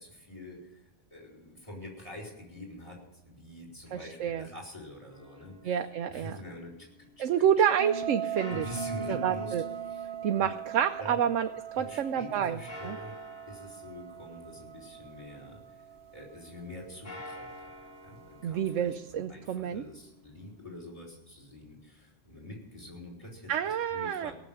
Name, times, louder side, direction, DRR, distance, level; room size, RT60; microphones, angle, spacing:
voice 1, 0.0-5.8 6.1-6.7 7.2-7.3 8.2-9.5 9.8-10.1 10.4-10.5 11.0-11.2 11.7-13.2 13.5-15.8 16.1-17.7 18.0-24.3, left 1 dB, 25° left, -1 dB, 4.9 m, -45 dB
voice 2, 3.9-4.5 5.6-6.4 7.2-8.7 9.1-9.6 10.2-11.5 11.8-12.6 12.8-13.0 18.4-19.8 23.5-24.3, right 9 dB, 85° right, 7 dB, 1.0 m, -28 dB
sound 1, 5.1-7.2 8.3-11.7 12.7-15.6 16.9-20.9, left 1 dB, 80° left, 4.0 m, -49 dB
sound 2, 7.8-17.1, right 7 dB, 55° right, 1.1 m, -40 dB
17.5 x 7.2 x 9.1 m, 0.94 s
omnidirectional pair, 1.2 m